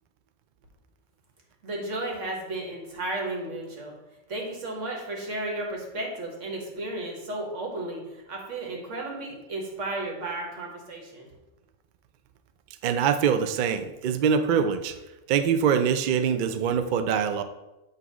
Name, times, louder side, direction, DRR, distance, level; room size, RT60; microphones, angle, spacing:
voice 1, 1.6-3.9 4.3-11.3, right 2 dB, 80° right, 0 dB, 1.7 m, -33 dB
voice 2, 12.8-15.0 15.3-17.4, right 7 dB, 60° right, 9 dB, 0.5 m, -24 dB
8.1 x 2.8 x 6.0 m, 1.0 s
omnidirectional pair, 1.3 m